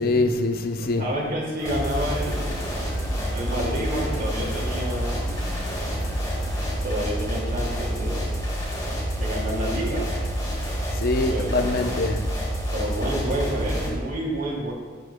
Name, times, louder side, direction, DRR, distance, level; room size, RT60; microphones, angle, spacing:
voice 1, 0.0-1.1 10.9-12.3, left 2 dB, 55° left, 6 dB, 0.5 m, -24 dB
voice 2, 1.0-2.7 3.3-5.4 6.8-8.3 9.2-10.1 11.3-12.0 12.7-14.7, right 1 dB, 50° right, -3 dB, 2.2 m, -29 dB
sound 1, 1.6-13.9, equal, 20° left, 1.7 m, -28 dB
sound 2, 1.6-6.8, equal, ahead, 1.7 m, -39 dB
10.5 x 8.2 x 2.2 m, 1.4 s
head